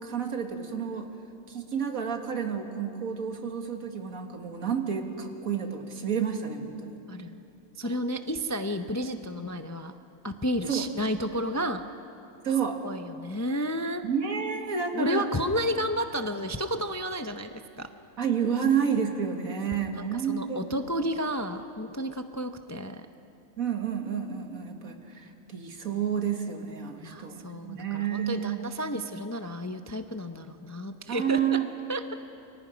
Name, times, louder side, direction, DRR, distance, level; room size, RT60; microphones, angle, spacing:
voice 1, 0.0-1.1 1.5-7.0 7.8-8.0 10.7-10.9 12.4-12.8 14.0-15.3 18.2-20.6 23.6-28.6 31.1-31.7, right 7 dB, 80° right, 4 dB, 2.1 m, -30 dB
voice 2, 7.1-7.4 7.8-9.9 10.2-11.8 12.8-14.0 14.9-17.9 19.9-23.1 27.0-31.6 31.9-32.1, equal, 20° left, 7 dB, 0.4 m, -32 dB
29.0 x 24.0 x 5.1 m, 2.7 s
omnidirectional pair, 1.4 m